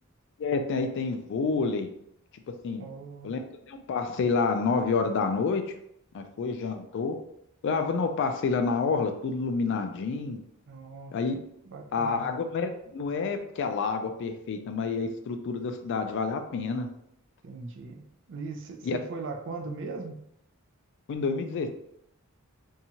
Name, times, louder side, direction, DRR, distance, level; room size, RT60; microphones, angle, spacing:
voice 1, 0.4-1.9 2.6-2.9 3.2-5.7 6.1-7.2 7.6-10.4 11.1-11.4 11.9-16.9 18.8-19.0 21.1-21.7, left 4 dB, 55° left, 7 dB, 0.3 m, -28 dB
voice 2, 2.8-3.3 10.7-11.1 11.7-12.3 17.4-20.2, right 3 dB, 60° right, 3 dB, 0.4 m, -39 dB
2.7 x 2.3 x 2.8 m, 0.75 s
head